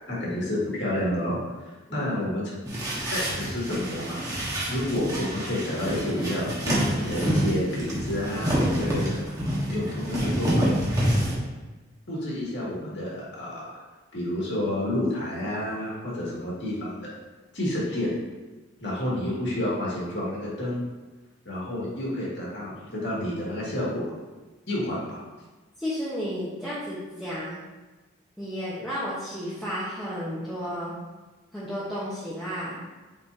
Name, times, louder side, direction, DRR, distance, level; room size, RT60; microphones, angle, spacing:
voice 1, 0.1-2.5 3.1-4.2 4.7-9.2 9.7-10.7 12.1-13.7 14.1-17.1 17.5-18.1 18.8-20.8 21.5-24.1 24.7-25.2, left 1 dB, 65° left, -6 dB, 2.1 m, -29 dB
sound 1, 2.7-11.4, equal, 15° right, 1.3 m, -27 dB
voice 2, 25.8-27.6 28.4-30.9 31.5-32.8, equal, ahead, -11 dB, 1.1 m, -32 dB
8.6 x 4.3 x 2.7 m, 1.2 s
head